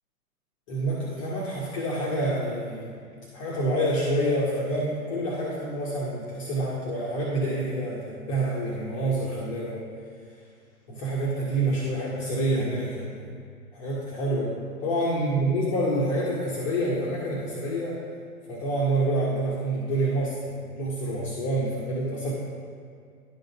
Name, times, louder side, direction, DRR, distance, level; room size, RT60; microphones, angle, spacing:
voice 1, 0.7-3.0 3.3-9.8 10.9-13.3 13.7-18.0 18.5-22.3, right 1 dB, 20° left, -5 dB, 0.9 m, -27 dB
10.5 x 4.0 x 5.1 m, 2.3 s
figure-of-eight pair, 125°, 45 cm